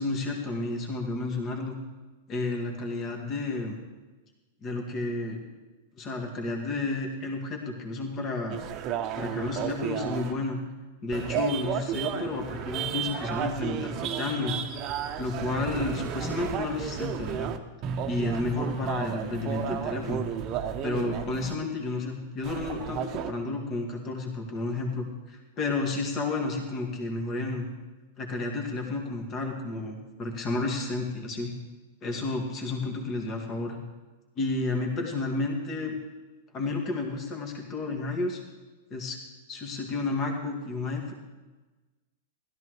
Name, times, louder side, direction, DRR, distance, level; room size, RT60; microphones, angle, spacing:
voice 1, 0.0-1.8 2.3-3.8 4.6-5.4 6.0-8.6 9.2-10.6 11.0-14.6 15.2-17.5 18.1-20.2 20.8-27.7 28.2-31.5 32.0-33.8 34.4-36.0 36.5-38.4 38.9-39.2 39.5-41.1, left 3 dB, 35° left, 2 dB, 2.0 m, -31 dB
sound 1, 8.5-10.3 11.1-17.6 17.8-21.6 22.4-23.3, right 9 dB, 40° right, 0.9 m, -33 dB
16.5 x 13.0 x 3.2 m, 1.2 s
hypercardioid pair, 105°, 0 cm